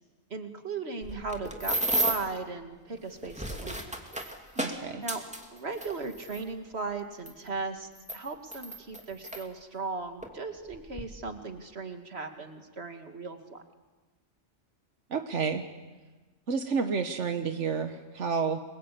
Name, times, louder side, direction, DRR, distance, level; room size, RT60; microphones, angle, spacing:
voice 1, 0.3-4.0 5.0-5.2 5.5-13.6, right 4 dB, 60° right, 6 dB, 2.4 m, -37 dB
sound 1, 1.0-2.4 3.1-6.4 7.3-7.4 7.9-9.4 10.2-10.3 10.7-11.0, right 1 dB, 5° right, 2.6 m, -33 dB
voice 2, 4.6-5.0 15.1-15.6 16.5-18.6, right 5 dB, 90° right, 6 dB, 1.6 m, -30 dB
29.0 x 23.0 x 8.5 m, 1.3 s
omnidirectional pair, 1.2 m